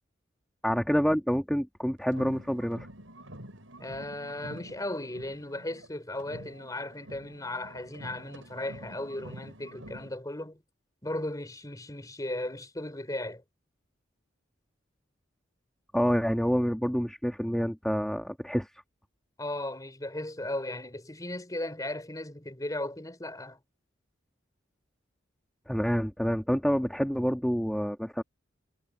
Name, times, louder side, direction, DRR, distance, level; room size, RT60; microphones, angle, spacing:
voice 1, 0.6-2.9 15.9-18.7 25.7-28.2, equal, 5° left, 1.8 m, -27 dB
sound 1, 2.0-5.9 6.2-10.2, right 1 dB, 85° right, 7.1 m, -47 dB
voice 2, 3.8-10.6 11.0-13.4 19.4-23.6, left 1 dB, 20° left, 4.0 m, -36 dB
head